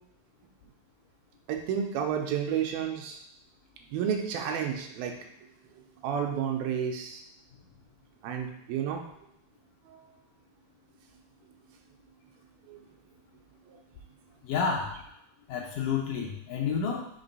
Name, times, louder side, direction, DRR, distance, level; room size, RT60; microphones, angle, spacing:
voice 1, 1.5-3.2 3.9-5.1 5.8-7.2 8.2-9.0 9.9-10.0 12.7-12.8 13.7-13.8, right 8 dB, 85° right, 3 dB, 2.5 m, -31 dB
voice 2, 14.4-14.9 15.5-17.0, left 6 dB, 75° left, -1 dB, 2.0 m, -30 dB
5.9 x 3.3 x 5.4 m, 0.76 s
omnidirectional pair, 4.2 m